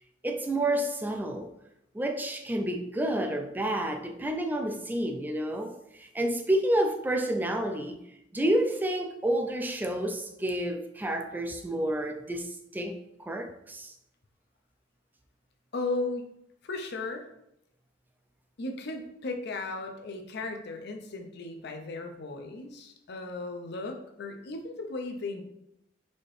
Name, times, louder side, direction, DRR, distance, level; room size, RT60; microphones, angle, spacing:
voice 1, 0.2-1.5 1.9-8.0 8.3-13.9, right 1 dB, 10° right, 0.3 m, -29 dB
voice 2, 15.7-16.2 16.6-17.3 18.6-25.4, left 3 dB, 60° left, 0.5 m, -36 dB
4.2 x 2.8 x 3.2 m
head